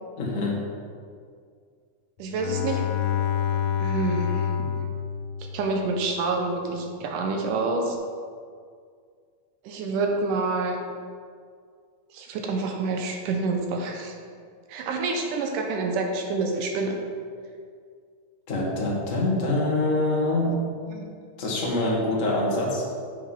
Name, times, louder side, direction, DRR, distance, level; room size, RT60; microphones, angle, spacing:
voice 1, 0.2-0.6 18.5-20.6 21.4-22.8, left 2 dB, 45° left, -4 dB, 1.0 m, -25 dB
voice 2, 2.2-2.8 3.8-4.9 5.5-8.0 9.6-10.8 12.1-14.2 14.7-17.0 20.9-21.1, right 3 dB, 80° right, 2 dB, 2.3 m, -28 dB
Bowed string instrument, 2.3-6.1, left 9 dB, 80° left, 1.6 m, -28 dB
8.0 x 5.0 x 5.8 m, 2.1 s
omnidirectional pair, 3.8 m